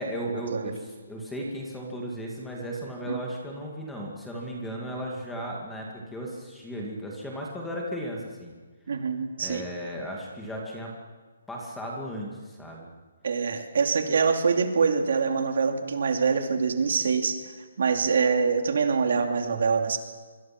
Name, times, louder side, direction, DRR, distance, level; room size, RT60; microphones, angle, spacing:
voice 1, 0.0-8.5 9.4-10.9 11.5-12.9, equal, 5° left, -2 dB, 2.2 m, -35 dB
voice 2, 8.9-9.6 13.2-17.4 17.8-20.0, right 5 dB, 50° right, 5 dB, 2.7 m, -24 dB
25.5 x 24.5 x 6.0 m, 1.4 s
hypercardioid pair, 180°, 0 cm